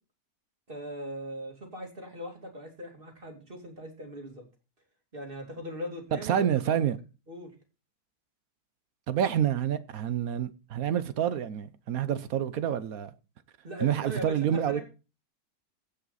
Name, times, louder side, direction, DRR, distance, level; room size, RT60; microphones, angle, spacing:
voice 1, 0.7-4.4 5.1-6.8 7.3-7.5 13.6-14.8, equal, 35° right, 2.8 m, -40 dB
voice 2, 6.1-7.0 9.1-13.1 13.8-14.8, right 9 dB, 65° right, 1.2 m, -28 dB
16.5 x 5.6 x 4.1 m
omnidirectional pair, 1.7 m